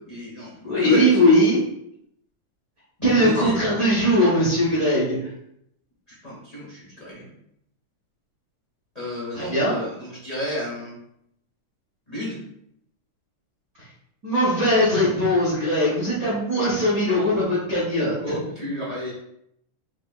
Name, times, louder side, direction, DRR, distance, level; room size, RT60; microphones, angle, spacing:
voice 1, 0.1-0.5 0.8-1.2 3.0-3.5 6.1-7.3 8.9-10.9 12.1-12.4 18.2-19.1, left 1 dB, 40° left, -7 dB, 0.5 m, -32 dB
voice 2, 0.6-1.6 3.0-5.3 9.3-9.7 14.2-18.3, equal, 55° right, -8 dB, 0.9 m, -20 dB
5.9 x 2.8 x 2.3 m, 0.75 s
omnidirectional pair, 3.4 m